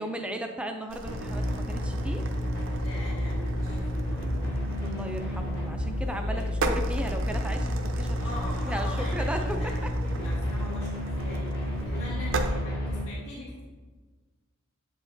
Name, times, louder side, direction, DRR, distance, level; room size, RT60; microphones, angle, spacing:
voice 1, 0.0-2.3 4.8-8.3 8.6-9.6 9.8-9.9, equal, 5° right, 4 dB, 0.4 m, -35 dB
sound 1, 0.9-12.5, right 3 dB, 60° right, 0.6 m, -38 dB
sound 2, 1.0-13.0, equal, 50° left, 1.8 m, -30 dB
voice 2, 2.8-4.5 6.1-6.8 8.2-13.6, left 2 dB, 70° left, -8 dB, 1.5 m, -43 dB
8.4 x 4.9 x 2.6 m, 1.4 s
head